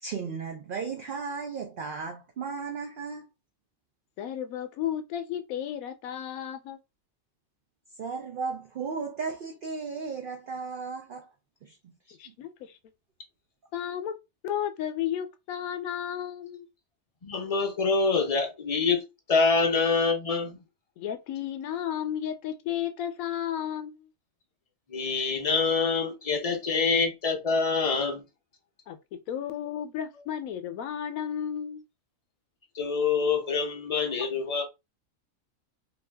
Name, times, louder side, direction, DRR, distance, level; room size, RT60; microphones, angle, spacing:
voice 1, 0.0-3.3 8.0-11.3 11.6-12.3, right 5 dB, 85° right, 0.4 m, -35 dB
voice 2, 4.2-6.8 12.2-12.8 13.7-14.1 14.4-16.7 21.0-24.1 28.9-31.8, left 10 dB, 80° left, 1.0 m, -33 dB
voice 3, 17.2-19.0 19.3-20.6 24.9-28.2 32.7-34.6, left 4 dB, 55° left, 0.4 m, -25 dB
2.7 x 2.3 x 3.3 m
omnidirectional pair, 1.5 m